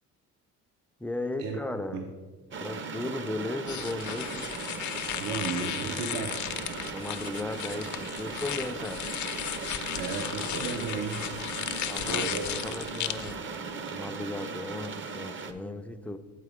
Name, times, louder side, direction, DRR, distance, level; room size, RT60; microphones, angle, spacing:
voice 1, 1.0-2.0 2.6-4.6 6.9-9.1 11.9-16.2, left 2 dB, 5° left, 8 dB, 0.3 m, -36 dB
sound 1, 2.5-15.5, right 4 dB, 35° right, 0.6 m, -38 dB
sound 2, 3.7-13.3, left 11 dB, 60° left, 0.5 m, -35 dB
voice 2, 5.2-6.4 9.9-11.3 11.8-12.5, right 5 dB, 75° right, 2 dB, 0.8 m, -34 dB
8.4 x 4.0 x 5.0 m, 1.4 s
cardioid pair, 100°, 34 cm